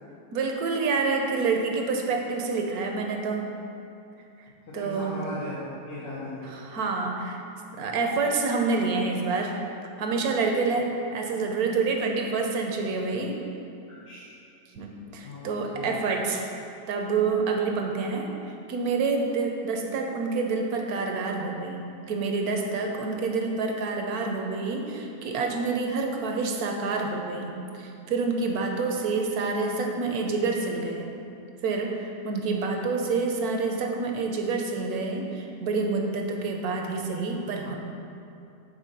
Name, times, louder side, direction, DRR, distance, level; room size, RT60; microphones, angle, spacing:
voice 1, 0.3-3.4 4.7-5.1 6.4-7.4 7.7-9.5 10.0-13.4 14.7-16.4 16.9-18.3 18.7-27.5 27.8-31.1 31.6-37.7, right 4 dB, 65° right, 2 dB, 1.1 m, -27 dB
voice 2, 4.7-6.6 14.1-14.2 15.2-15.9, left 2 dB, 75° left, -10 dB, 1.8 m, -38 dB
7.4 x 4.0 x 5.3 m, 2.7 s
omnidirectional pair, 1.9 m